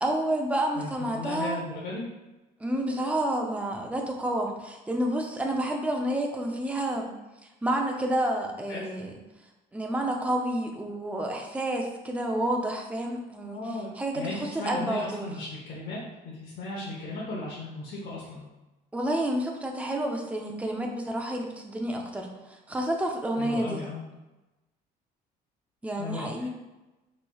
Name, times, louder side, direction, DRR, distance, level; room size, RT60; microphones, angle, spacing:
voice 1, 0.0-1.6 2.6-7.1 7.6-9.1 9.7-13.6 14.0-15.3 18.9-23.8 25.8-26.5, right 1 dB, 10° right, 1 dB, 0.5 m, -29 dB
voice 2, 0.7-2.0 8.7-8.8 13.4-13.9 14.1-18.5 23.4-24.0 26.0-26.5, left 2 dB, 65° left, -7 dB, 0.9 m, -36 dB
4.1 x 3.1 x 2.3 m, 1.1 s
cardioid pair, 110°, 17 cm